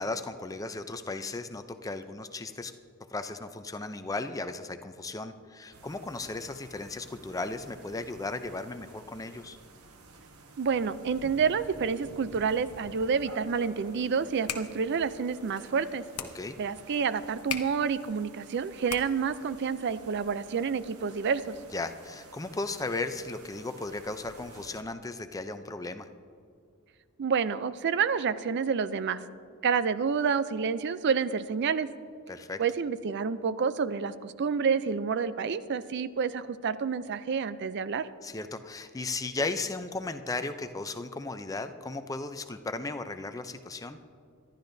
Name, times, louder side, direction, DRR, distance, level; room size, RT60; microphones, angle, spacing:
voice 1, 0.0-2.7 3.1-9.6 16.3-16.5 21.7-26.1 32.3-32.6 38.2-44.0, left 3 dB, 15° left, 9 dB, 0.5 m, -36 dB
sound 1, 5.7-24.8, right 3 dB, 80° right, 1.1 m, -52 dB
voice 2, 10.6-16.0 16.6-21.6 27.2-29.2 29.6-31.9 32.6-38.1, right 6 dB, 50° right, 14 dB, 0.4 m, -29 dB
sound 2, 14.2-19.4, left 8 dB, 80° left, 0.9 m, -41 dB
25.0 x 12.0 x 2.7 m, 2.3 s
head